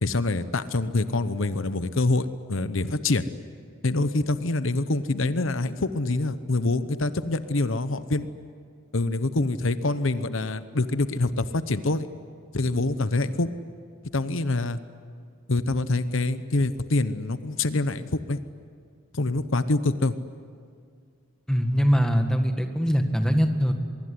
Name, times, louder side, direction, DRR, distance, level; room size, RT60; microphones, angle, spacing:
voice 1, 0.0-3.2 3.8-8.3 8.9-12.1 12.5-13.5 14.1-14.8 15.5-18.4 19.1-20.1, left 2 dB, 75° left, 12 dB, 1.0 m, -25 dB
voice 2, 21.5-23.7, equal, 5° left, 5 dB, 1.7 m, -22 dB
23.5 x 23.0 x 9.8 m, 2.2 s
head